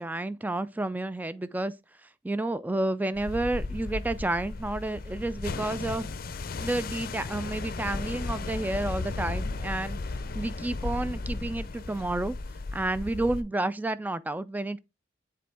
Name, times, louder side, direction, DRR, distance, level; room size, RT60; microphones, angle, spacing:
voice 1, 0.0-1.7 2.0-6.1 6.6-12.4 12.7-14.8, right 2 dB, 10° right, 0.3 m, -30 dB
sound 1, 3.2-13.4, left 3 dB, 50° left, 0.5 m, -35 dB
7.7 x 3.8 x 3.4 m
head